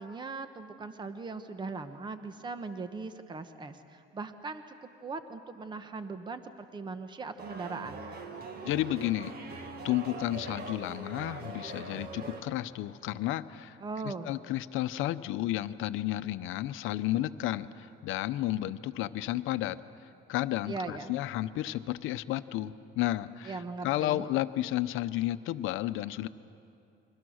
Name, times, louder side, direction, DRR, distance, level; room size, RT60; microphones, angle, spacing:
voice 1, 0.0-8.0 13.8-14.3 20.7-21.1 23.4-24.2, right 4 dB, 20° right, 9 dB, 1.0 m, -39 dB
sound 1, 7.4-12.4, right 3 dB, 45° right, 2.0 m, -42 dB
voice 2, 8.6-13.8 14.0-19.8 20.3-26.3, left 14 dB, 70° left, 12 dB, 0.8 m, -32 dB
29.5 x 23.0 x 6.4 m, 2.6 s
cardioid pair, 130°, 21 cm